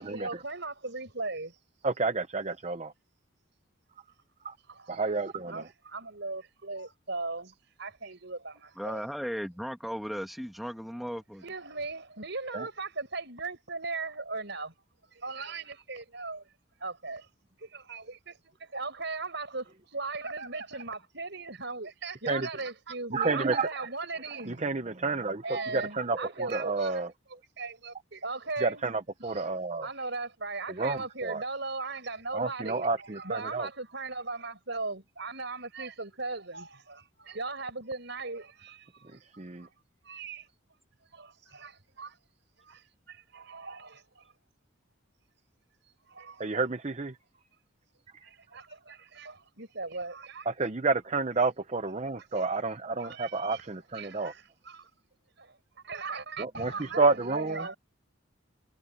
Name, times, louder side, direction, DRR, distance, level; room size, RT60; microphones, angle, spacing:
voice 1, 0.0-1.6 4.7-5.1 5.5-9.1 11.4-14.7 15.0-16.5 16.8-17.3 17.6-24.6 25.4-27.1 27.6-28.8 29.2-29.5 29.8-39.7 40.0-40.5 41.1-42.2 42.6-44.3 46.1-46.4 48.2-50.5 52.3-52.4 53.0-53.7 53.9-54.9 55.4-55.6 55.8-57.8, right 3 dB, 55° right, 6.8 m, -38 dB
voice 2, 1.8-2.9 4.4-4.5 4.9-5.7 12.5-12.7 22.3-22.5 23.1-23.7 24.5-27.1 28.6-29.9 30.7-31.4 32.3-33.7 39.4-39.7 46.4-47.2 50.5-54.3 56.4-57.7, right 3 dB, 30° right, 0.7 m, -30 dB
voice 3, 8.8-11.4, equal, ahead, 1.8 m, -36 dB
head